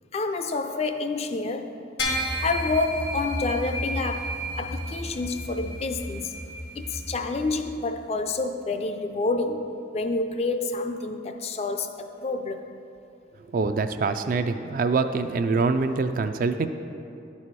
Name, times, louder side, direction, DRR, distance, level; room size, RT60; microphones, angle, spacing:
voice 1, 0.1-1.8 2.4-6.3 6.8-12.6, left 3 dB, 35° left, 7 dB, 0.3 m, -28 dB
sound 1, 2.0-7.6, equal, 90° left, 1.3 m, -32 dB
voice 2, 13.5-16.7, right 4 dB, 50° right, 9 dB, 0.3 m, -24 dB
11.0 x 4.2 x 4.6 m, 2.7 s
head